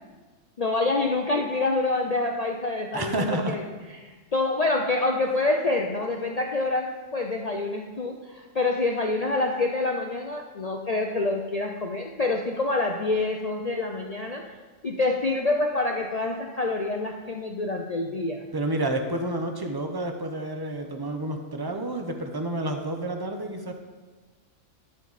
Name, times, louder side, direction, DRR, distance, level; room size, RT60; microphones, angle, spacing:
voice 1, 0.6-3.7 4.0-14.5 14.8-18.4, left 2 dB, 50° left, 2 dB, 0.4 m, -27 dB
voice 2, 2.9-3.6 18.5-23.8, right 1 dB, 25° right, 5 dB, 0.6 m, -29 dB
11.0 x 7.4 x 4.1 m, 1.4 s
omnidirectional pair, 1.4 m